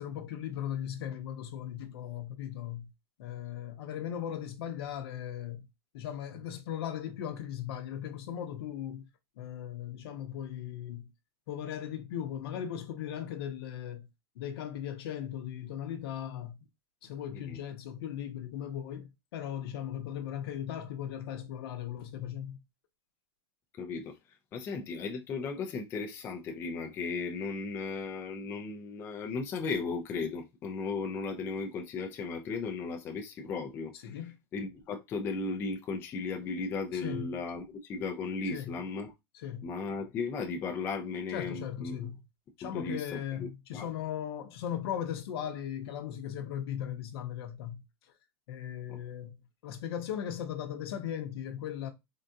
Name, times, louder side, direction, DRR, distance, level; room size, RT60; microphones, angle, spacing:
voice 1, 0.0-2.9 3.2-5.6 5.9-9.1 9.4-11.1 11.5-14.1 14.4-16.6 17.0-22.6 34.0-34.3 36.9-37.2 38.5-38.7 39.3-39.7 41.3-42.1 42.6-47.8 48.5-49.4 49.6-51.9, left 10 dB, 65° left, 0.7 m, -38 dB
voice 2, 23.8-24.2 24.5-34.2 34.5-39.1 39.6-42.0 42.6-43.9 48.9-49.0, left 4 dB, 15° left, 0.3 m, -36 dB
3.6 x 2.3 x 2.7 m
supercardioid pair, 160°, 14 cm